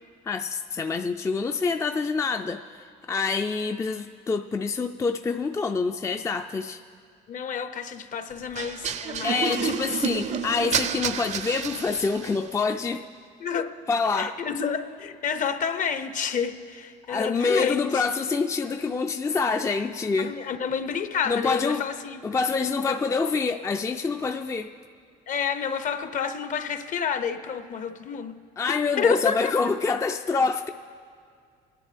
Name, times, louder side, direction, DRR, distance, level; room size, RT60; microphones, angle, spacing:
voice 1, 0.3-6.8 9.2-13.0 13.9-14.4 17.1-20.3 21.3-21.8 22.2-24.7 28.6-30.7, left 4 dB, 15° left, 6 dB, 0.4 m, -26 dB
voice 2, 7.3-10.2 13.4-13.7 14.2-18.0 20.2-22.2 25.3-28.3 29.0-29.4, left 7 dB, 50° left, 10 dB, 0.8 m, -29 dB
sound 1, 8.5-12.5, right 7 dB, 45° right, 0.5 m, -30 dB
24.0 x 10.5 x 3.4 m, 2.2 s
cardioid pair, 110°, 17 cm